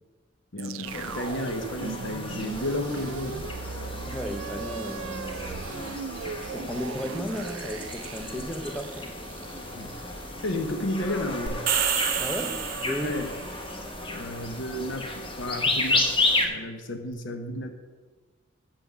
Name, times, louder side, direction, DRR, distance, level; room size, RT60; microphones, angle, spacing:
voice 1, 0.5-4.1 9.7-10.0 10.4-11.6 13.0-13.3 14.1-16.1 16.4-17.7, left 1 dB, 70° left, 5 dB, 1.0 m, -33 dB
sound 1, 0.6-10.8, right 6 dB, 90° right, 0.3 m, -39 dB
sound 2, 0.8-16.5, left 2 dB, 25° left, 1.1 m, -32 dB
voice 2, 4.1-5.9 6.2-9.2 12.2-13.2 16.5-16.6, left 1 dB, 5° left, 6 dB, 0.6 m, -35 dB
sound 3, 11.5-13.4, right 9 dB, 45° right, 0.8 m, -28 dB
7.0 x 5.8 x 7.2 m, 1.4 s
head